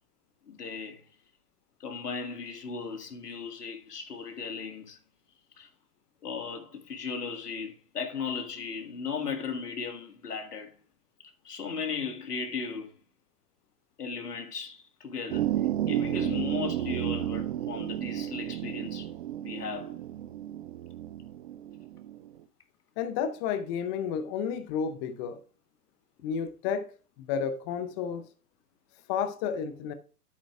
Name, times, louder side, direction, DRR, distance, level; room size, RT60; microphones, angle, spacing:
voice 1, 0.5-1.0 1.8-5.0 5.6-5.7 6.2-10.7 11.4-12.9 14.0-15.5 15.9-19.1 19.4-20.0, left 5 dB, 80° left, 1.8 m, -36 dB
sound 1, 15.3-22.3, right 12 dB, 45° right, 0.5 m, -32 dB
voice 2, 23.0-25.4 26.2-26.9 27.2-28.3 29.1-29.9, left 7 dB, 15° left, 0.4 m, -31 dB
10.5 x 8.4 x 2.4 m
hypercardioid pair, 120°, 46 cm